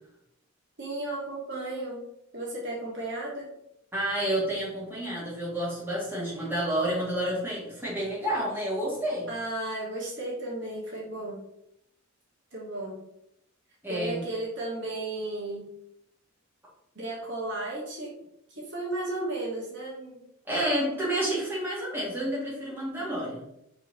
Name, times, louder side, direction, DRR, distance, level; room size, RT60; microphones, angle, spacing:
voice 1, 0.8-2.0 2.3-3.5 9.3-11.4 12.5-13.0 13.9-15.7 16.9-18.1 18.5-20.2 23.0-23.1, right 2 dB, 60° right, -4 dB, 2.9 m, -34 dB
voice 2, 3.9-9.3 13.8-14.2 20.5-23.4, right 1 dB, 10° right, -7 dB, 3.7 m, -29 dB
6.2 x 5.2 x 6.7 m, 0.80 s
head